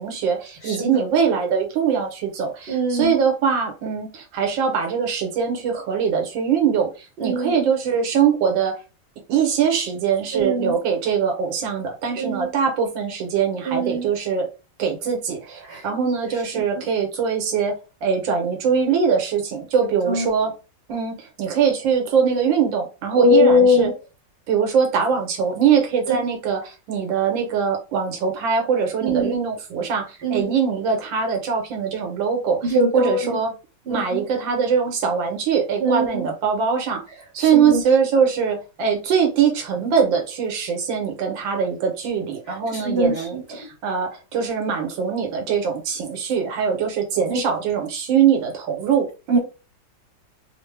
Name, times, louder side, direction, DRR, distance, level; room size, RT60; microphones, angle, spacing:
voice 1, 0.0-8.7 9.3-14.5 14.8-17.7 18.0-20.5 20.9-23.9 24.5-32.6 32.9-33.5 33.9-37.0 37.3-49.4, right 6 dB, 85° right, 3 dB, 1.6 m, -22 dB
voice 2, 0.6-1.0 2.7-3.2 7.2-7.7 10.3-10.8 12.2-12.5 13.6-14.1 15.7-15.9 16.5-16.9 19.8-20.3 23.1-23.9 26.1-26.2 29.0-29.4 30.2-30.5 32.6-33.4 33.8-34.2 35.8-36.3 37.4-37.8 42.7-43.7 47.3-47.4 49.3-49.4, left 1 dB, 45° right, -1 dB, 0.9 m, -22 dB
3.6 x 2.1 x 3.2 m, 0.31 s
omnidirectional pair, 2.0 m